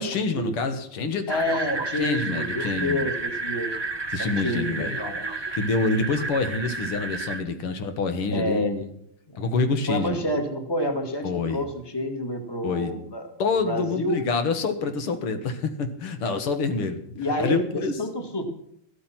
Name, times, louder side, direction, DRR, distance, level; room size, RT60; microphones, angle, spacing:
voice 1, 0.0-1.6 2.0-3.1 4.1-5.0 5.5-8.8 9.4-10.2 11.2-11.6 12.6-12.9 13.4-18.0, left 4 dB, 80° left, 8 dB, 2.4 m, -27 dB
voice 2, 1.3-3.8 4.2-5.2 7.4-7.6 8.3-8.8 9.9-13.2 13.5-14.2 17.2-18.4, left 1 dB, 10° left, 6 dB, 1.9 m, -28 dB
sound 1, 1.3-7.4, right 3 dB, 25° right, 0.6 m, -31 dB
14.0 x 13.5 x 5.9 m, 0.69 s
omnidirectional pair, 2.4 m